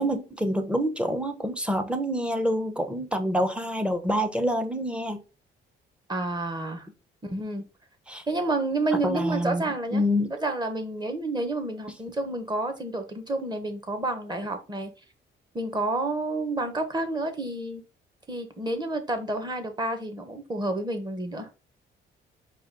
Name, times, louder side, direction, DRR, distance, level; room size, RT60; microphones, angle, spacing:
voice 1, 0.0-5.2 8.1-8.2 9.0-9.6 9.9-10.3, equal, 5° right, 7 dB, 0.8 m, -26 dB
voice 2, 6.1-6.9 7.2-7.6 8.3-10.0 10.3-14.9 15.5-17.8 18.3-21.5, right 2 dB, 20° right, 6 dB, 1.1 m, -29 dB
4.9 x 2.4 x 3.8 m, 0.31 s
cardioid pair, 90°, 20 cm